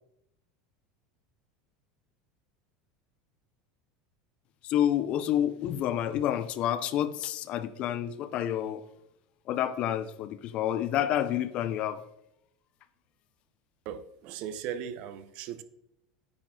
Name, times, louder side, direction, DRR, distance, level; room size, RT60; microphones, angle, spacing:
voice 1, 4.6-8.8 9.5-12.0, left 11 dB, 50° left, 0.5 m, -29 dB
voice 2, 13.8-15.6, right 9 dB, 60° right, 0.6 m, -38 dB
9.6 x 4.7 x 3.7 m
supercardioid pair, 115°, 2 cm